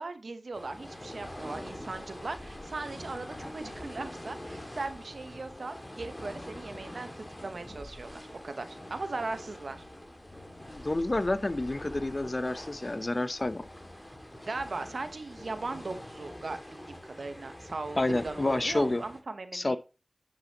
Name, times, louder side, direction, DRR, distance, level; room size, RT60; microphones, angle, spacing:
voice 1, 0.0-9.8 14.5-19.8, right 3 dB, 70° right, 1.0 m, -38 dB
sound 1, 0.5-19.2, left 1 dB, 20° left, 2.2 m, -45 dB
voice 2, 10.7-13.7 18.0-19.0 19.5-19.8, left 2 dB, 40° left, 0.8 m, -29 dB
9.4 x 6.7 x 2.9 m
cardioid pair, 40°, 0 cm